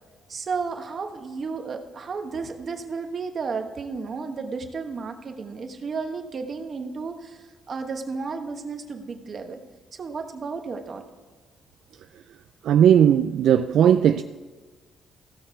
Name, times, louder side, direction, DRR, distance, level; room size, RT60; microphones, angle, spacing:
voice 1, 0.3-9.6 10.0-11.0, right 4 dB, 45° right, 1.2 m, -33 dB
voice 2, 12.6-14.2, right 9 dB, 75° right, 0.3 m, -17 dB
15.5 x 6.6 x 4.5 m
cardioid pair, 90°, 0 cm